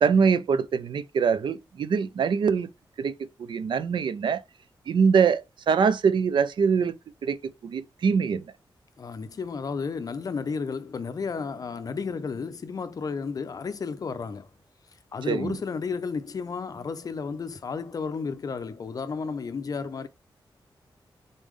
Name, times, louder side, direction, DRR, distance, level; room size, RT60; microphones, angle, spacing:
voice 1, 0.0-2.7 3.0-3.1 3.5-4.4 4.9-6.9 7.2-8.4 15.3-15.6, right 6 dB, 65° right, 0.4 m, -23 dB
voice 2, 9.0-14.5 15.1-20.1, left 5 dB, 45° left, 0.5 m, -32 dB
4.0 x 3.3 x 3.6 m
wide cardioid pair, 145°, 9 cm